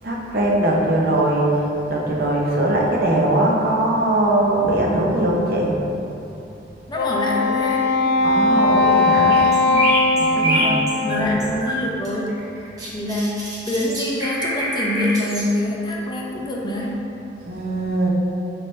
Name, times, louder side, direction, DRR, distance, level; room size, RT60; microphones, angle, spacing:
voice 1, 0.0-5.8 8.2-9.8 10.2-10.8 11.2-11.5 17.4-18.1, right 1 dB, 60° right, -2 dB, 0.9 m, -21 dB
Wind instrument woodwind instrument, 6.9-11.5, left 2 dB, 60° left, 0.3 m, -19 dB
voice 2, 6.9-7.9 9.7-10.0 10.3-12.4 12.9-17.0, left 1 dB, 25° left, -2 dB, 0.7 m, -25 dB
sound 1, 9.3-11.8 12.0-15.5, right 1 dB, 20° right, 1.3 m, -25 dB
6.0 x 4.8 x 3.2 m, 2.9 s
head